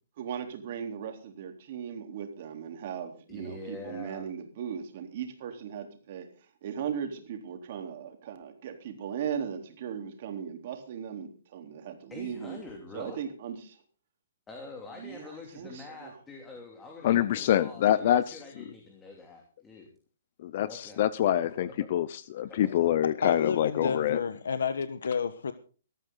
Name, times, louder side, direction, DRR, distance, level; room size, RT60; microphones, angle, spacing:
voice 1, 0.2-6.3 6.6-12.6 12.9-13.8 15.0-16.2, right 8 dB, 45° right, 3.6 m, -38 dB
voice 2, 3.3-4.3 12.1-13.2 14.5-19.9 20.7-21.0 21.6-21.9 22.5-22.6, left 3 dB, 10° left, 2.9 m, -45 dB
voice 3, 17.0-18.4 20.4-24.2, left 11 dB, 45° left, 0.7 m, -26 dB
voice 4, 23.2-25.5, left 6 dB, 85° left, 1.2 m, -30 dB
18.5 x 13.5 x 4.0 m
hypercardioid pair, 160°, 0 cm